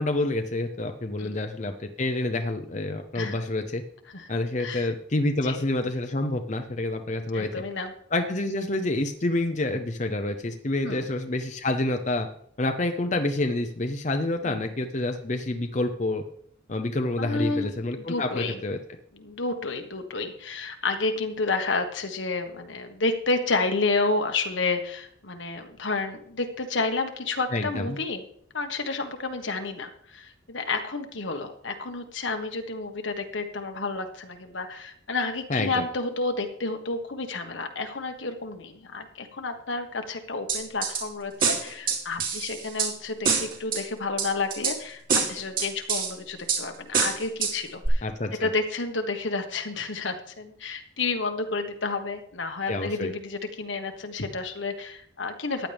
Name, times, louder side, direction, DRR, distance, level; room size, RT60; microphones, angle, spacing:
voice 1, 0.0-3.8 4.3-7.5 8.1-12.3 12.6-16.2 16.7-18.8 27.5-28.0 35.5-35.9 48.0-48.5 52.7-53.1, left 2 dB, 40° left, 6 dB, 0.8 m, -28 dB
voice 2, 4.6-4.9 5.4-5.6 7.3-7.9 10.8-11.1 14.4-14.6 17.2-18.6 19.1-28.2 28.5-45.0 45.3-48.1 48.4-55.7, left 3 dB, 75° left, 6 dB, 1.5 m, -30 dB
sound 1, 40.5-41.0 41.4-42.9 43.3-43.8 44.2-44.8 45.1-46.1 46.5-46.6 46.9-47.5 47.9-48.0, right 5 dB, 45° right, 3.2 m, -25 dB
15.0 x 10.5 x 3.5 m, 0.65 s
head